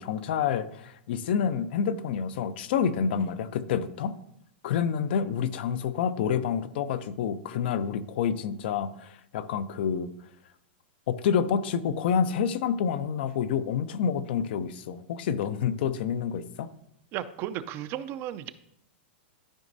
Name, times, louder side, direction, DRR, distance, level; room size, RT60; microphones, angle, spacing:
voice 1, 0.0-4.1 4.6-10.1 11.1-16.7, left 7 dB, 65° left, 13 dB, 0.6 m, -28 dB
voice 2, 17.1-18.5, right 11 dB, 40° right, 13 dB, 0.5 m, -34 dB
12.5 x 5.1 x 2.7 m, 0.76 s
hypercardioid pair, 125°, 6 cm